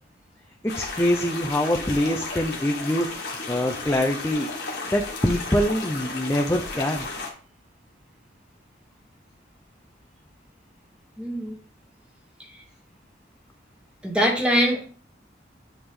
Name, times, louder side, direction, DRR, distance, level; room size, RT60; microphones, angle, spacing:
voice 1, 0.6-7.1, left 1 dB, 15° left, 2 dB, 0.5 m, -25 dB
sound 1, 0.7-7.3, left 3 dB, 65° left, 1.6 m, -34 dB
voice 2, 11.2-11.6 12.4-12.5 14.0-14.8, equal, 5° right, 0 dB, 1.3 m, -23 dB
9.6 x 3.6 x 3.6 m, 0.42 s
head